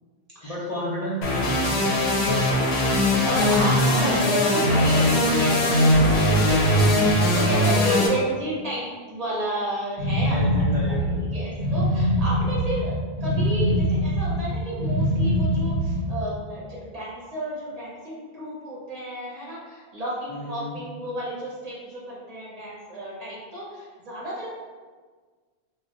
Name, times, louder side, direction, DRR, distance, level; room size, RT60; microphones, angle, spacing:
voice 1, 0.4-2.2 3.8-4.1 6.8-7.1 10.1-11.2 20.3-20.8, equal, 50° left, -8 dB, 0.5 m, -33 dB
sound 1, 1.2-8.1, left 1 dB, 90° left, 0.9 m, -20 dB
voice 2, 2.1-24.5, right 1 dB, 40° right, -7 dB, 0.7 m, -31 dB
sound 2, 10.0-16.3, equal, 75° right, 0.8 m, -24 dB
2.2 x 2.2 x 3.8 m, 1.5 s
omnidirectional pair, 1.1 m